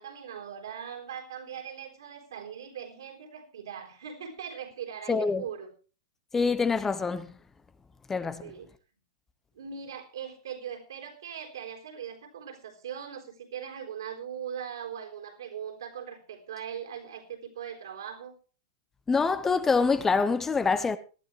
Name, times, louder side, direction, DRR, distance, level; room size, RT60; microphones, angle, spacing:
voice 1, 0.0-5.7 8.4-8.7 9.5-18.4, right 8 dB, 75° right, 4.0 m, -40 dB
voice 2, 5.1-5.4 6.3-7.3 8.1-8.5 19.1-21.0, left 4 dB, 15° left, 0.9 m, -25 dB
19.0 x 12.0 x 3.3 m
hypercardioid pair, 105°, 2 cm